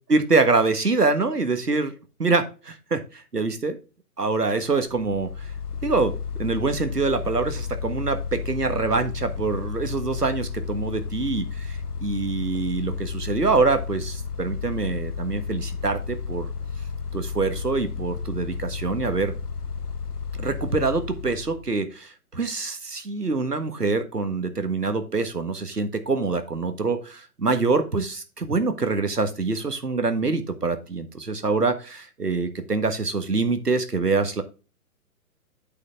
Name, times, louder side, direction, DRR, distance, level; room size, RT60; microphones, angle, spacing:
voice 1, 0.1-1.9 2.2-3.8 4.2-5.5 5.8-6.1 6.4-16.5 17.1-19.3 20.4-34.4, right 3 dB, 85° right, 9 dB, 1.7 m, -25 dB
Mechanical fan, 4.9-21.7, left 5 dB, 80° left, 1.2 m, -32 dB
8.6 x 6.4 x 3.5 m, 0.32 s
figure-of-eight pair, 125°, 46 cm